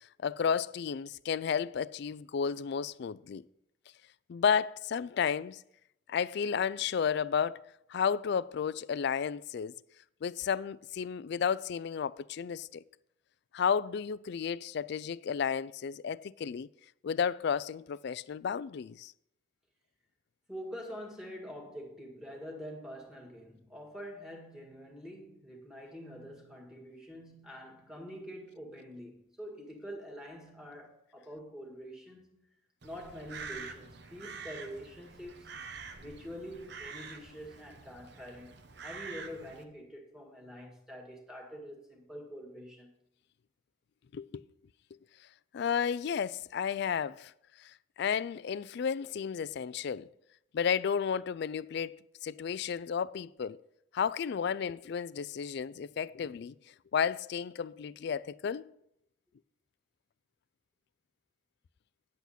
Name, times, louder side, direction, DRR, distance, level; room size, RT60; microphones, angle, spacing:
voice 1, 0.2-3.4 4.3-5.6 6.1-7.6 7.9-9.7 10.2-12.8 13.5-16.7 17.0-19.1 44.1-44.4 45.5-47.3 47.6-47.7 48.0-50.1 50.5-52.0 52.2-53.6 53.9-56.5 56.9-58.6, left 7 dB, 55° left, 0.3 m, -32 dB
voice 2, 20.5-32.5 32.8-35.5 36.0-38.5 38.8-42.9, equal, 5° right, 1.7 m, -46 dB
Crow, 32.8-39.6, right 5 dB, 55° right, 0.9 m, -46 dB
9.6 x 8.2 x 4.2 m
head